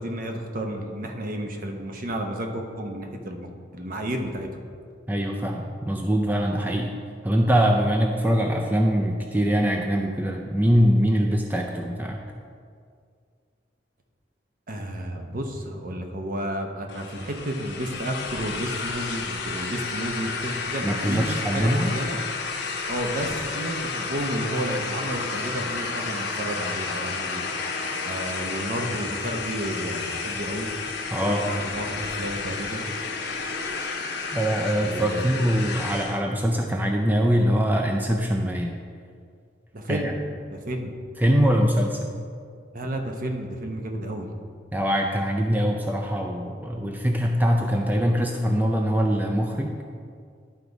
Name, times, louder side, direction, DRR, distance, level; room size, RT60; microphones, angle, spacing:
voice 1, 0.0-3.5 3.7-4.5 14.7-22.2 22.9-27.5 28.0-30.7 31.2-32.9 34.8-35.6 39.7-40.2 40.5-40.9 42.7-44.3, right 1 dB, 50° right, 3 dB, 0.8 m, -31 dB
voice 2, 5.1-7.0 7.2-12.2 20.8-21.9 31.1-31.4 34.3-38.8 39.9-40.1 41.2-42.1 44.7-49.7, equal, 10° right, 1 dB, 0.4 m, -23 dB
sound 1, 16.9-36.2, left 4 dB, 65° left, 0.9 m, -31 dB
11.5 x 4.0 x 4.8 m, 2.2 s
head